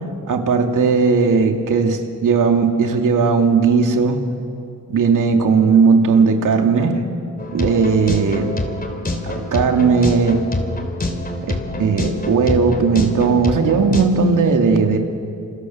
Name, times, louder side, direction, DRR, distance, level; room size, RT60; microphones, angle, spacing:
voice 1, 0.3-4.2 4.9-7.0 7.5-8.6 9.2-10.5 11.4-11.5 11.8-15.0, right 5 dB, 80° right, 3 dB, 2.8 m, -16 dB
sound 1, 7.4-14.0, left 1 dB, 30° left, 3.1 m, -26 dB
29.5 x 27.0 x 7.4 m, 2.5 s
wide cardioid pair, 110°, 31 cm